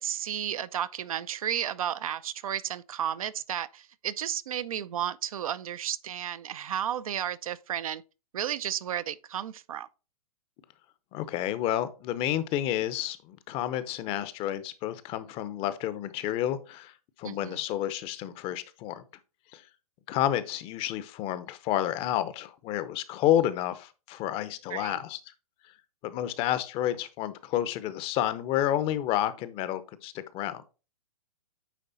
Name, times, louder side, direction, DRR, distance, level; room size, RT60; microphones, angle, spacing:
voice 1, 0.0-8.0 8.3-9.9 17.2-17.6 24.7-25.0, right 10 dB, 65° right, 0.6 m, -33 dB
voice 2, 11.1-19.0 19.5-19.6 20.1-25.2 26.0-30.6, left 12 dB, 30° left, 0.7 m, -30 dB
9.3 x 3.6 x 4.0 m
hypercardioid pair, 125°, 19 cm